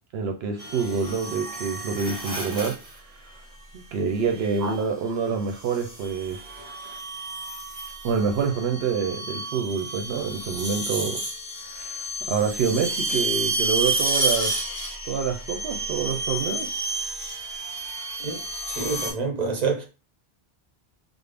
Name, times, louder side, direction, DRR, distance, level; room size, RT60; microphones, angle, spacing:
voice 1, 0.1-2.8 3.7-6.4 8.0-11.2 11.7-14.6 15.0-16.7, right 6 dB, 80° right, 0.8 m, -27 dB
sound 1, 0.6-3.0 4.3-4.7 5.6-19.1, right 2 dB, 5° right, 1.4 m, -31 dB
voice 2, 18.7-19.8, right 4 dB, 45° right, 0.9 m, -27 dB
3.5 x 2.0 x 3.4 m
omnidirectional pair, 1.0 m